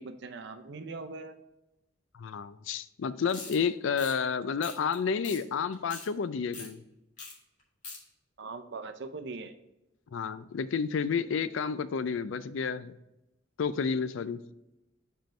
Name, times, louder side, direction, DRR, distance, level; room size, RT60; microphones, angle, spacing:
voice 1, 0.0-1.3 8.4-9.5, right 3 dB, 60° right, 9 dB, 0.6 m, -41 dB
voice 2, 2.1-6.8 10.1-13.0 13.6-14.4, left 6 dB, 75° left, 14 dB, 0.4 m, -30 dB
sound 1, 3.3-3.6 3.9-4.1 4.6-4.9 5.2-5.4 5.7-6.1 6.5-6.7 7.2-7.3 7.6-8.0, left 3 dB, 40° left, 2.1 m, -42 dB
5.2 x 4.5 x 5.7 m, 0.93 s
head